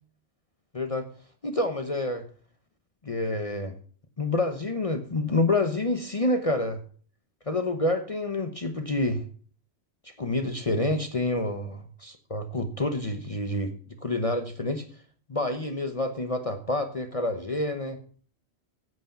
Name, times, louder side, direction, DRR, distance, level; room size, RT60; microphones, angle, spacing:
voice 1, 0.7-1.1 1.4-2.2 3.0-3.8 4.2-6.8 7.5-9.2 10.2-13.7 14.0-14.8 15.3-18.0, left 2 dB, 35° left, 6 dB, 1.0 m, -28 dB
9.3 x 8.3 x 5.7 m, 0.44 s
omnidirectional pair, 1.1 m